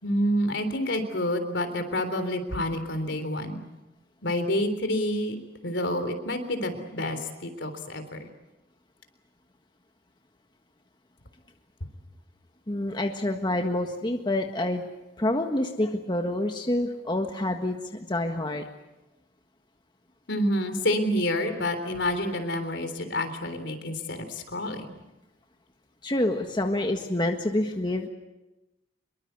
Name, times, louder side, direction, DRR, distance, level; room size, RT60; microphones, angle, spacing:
voice 1, 0.0-3.6 4.2-5.4 5.6-8.3 20.3-24.9, left 1 dB, 70° left, 8 dB, 3.6 m, -28 dB
voice 2, 12.7-14.9 15.2-18.7 26.0-28.1, left 1 dB, 25° left, 4 dB, 1.6 m, -27 dB
26.0 x 22.5 x 8.1 m, 1.0 s
head